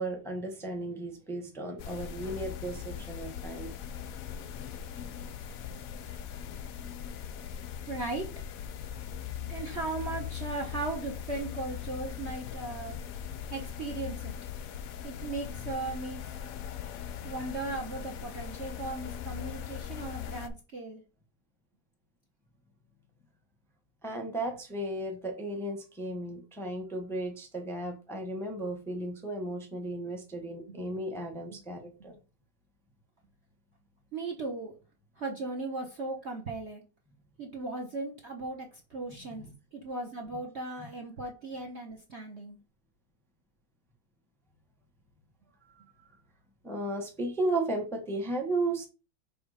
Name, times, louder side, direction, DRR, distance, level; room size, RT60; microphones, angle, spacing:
voice 1, 0.0-3.7 24.0-32.2 39.4-39.5 46.6-48.9, right 2 dB, ahead, 2 dB, 0.9 m, -34 dB
sound 1, 1.8-20.5, left 9 dB, 70° left, 0.8 m, -40 dB
voice 2, 7.9-8.3 9.4-13.0 13.5-14.3 15.0-16.3 17.2-21.0 30.7-30.9 34.1-34.7 35.2-36.8 37.4-39.4 39.7-42.6, right 3 dB, 45° right, 1 dB, 1.0 m, -37 dB
6.3 x 3.6 x 4.9 m, 0.32 s
omnidirectional pair, 2.1 m